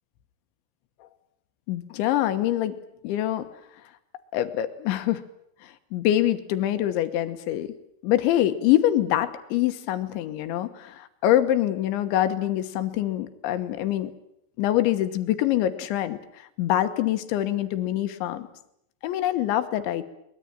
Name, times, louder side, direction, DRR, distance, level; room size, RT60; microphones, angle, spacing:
voice 1, 1.7-2.7 3.0-3.5 4.3-5.2 5.6-7.7 8.0-14.1 14.6-18.5 19.0-20.0, left 13 dB, 75° left, 10 dB, 3.3 m, -25 dB
23.0 x 21.5 x 9.0 m, 0.77 s
omnidirectional pair, 5.8 m